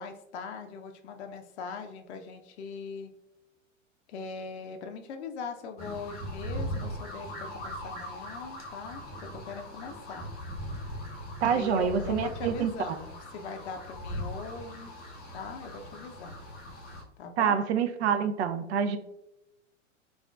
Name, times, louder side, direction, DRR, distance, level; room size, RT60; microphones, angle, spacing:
voice 1, 0.0-3.1 4.1-10.3 11.4-14.9 15.3-16.4 17.2-17.6, left 5 dB, 60° left, 5 dB, 0.5 m, -40 dB
sound 1, 5.8-17.0, equal, 25° left, 0.8 m, -40 dB
voice 2, 11.4-12.7 17.4-19.0, right 7 dB, 60° right, 9 dB, 0.5 m, -26 dB
3.4 x 2.4 x 2.3 m, 0.87 s
figure-of-eight pair, 105°, 39 cm